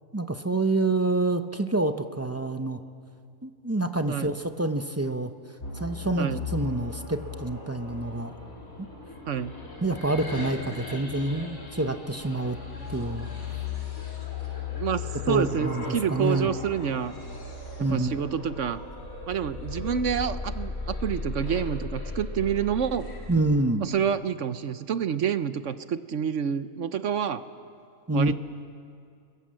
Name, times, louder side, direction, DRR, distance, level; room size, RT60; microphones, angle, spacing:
voice 1, 0.1-2.8 3.4-5.3 5.7-8.3 9.8-12.6 12.9-13.3 15.3-16.5 17.8-18.1 23.3-23.9 28.1-28.4, right 2 dB, 20° right, 8 dB, 0.4 m, -27 dB
voice 2, 4.1-4.4 6.2-6.5 9.3-9.5 14.7-17.1 17.8-18.8 19.3-23.1 23.8-27.4 28.1-28.4, right 8 dB, 55° right, 12 dB, 1.0 m, -28 dB
sound 1, 5.6-23.4, left 4 dB, 60° left, 4.3 m, -37 dB
29.5 x 21.5 x 7.7 m, 2.4 s
omnidirectional pair, 1.7 m